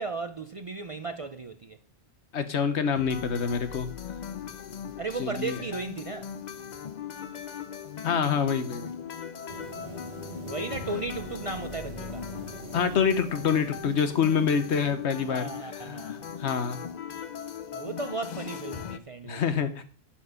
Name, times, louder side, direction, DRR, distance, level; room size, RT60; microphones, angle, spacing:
voice 1, 0.0-1.8 5.0-6.3 9.8-10.0 10.5-12.3 15.2-16.3 17.7-19.4, right 3 dB, 50° right, 0.4 m, -35 dB
voice 2, 2.3-3.9 5.2-5.6 8.0-9.0 12.7-16.8 19.2-19.8, left 6 dB, 85° left, 1.2 m, -27 dB
sound 1, 2.9-19.0, left 8 dB, 50° left, 0.6 m, -39 dB
sound 2, 9.5-15.4, right 6 dB, 75° right, 1.4 m, -45 dB
11.5 x 4.4 x 5.1 m
omnidirectional pair, 1.1 m